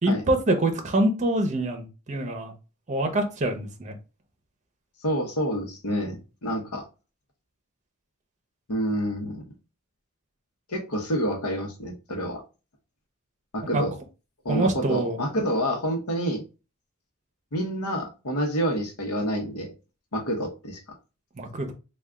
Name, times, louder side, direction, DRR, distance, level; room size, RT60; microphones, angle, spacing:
voice 1, 0.0-2.5 2.9-4.0 13.7-13.8 14.5-15.2 21.4-21.7, right 1 dB, 30° right, 0.7 m, -25 dB
voice 2, 5.0-6.8 8.7-9.4 10.7-12.4 13.5-13.9 14.4-16.4 17.5-19.7 20.1-20.8, equal, 75° left, 0.9 m, -28 dB
3.4 x 2.3 x 3.7 m
head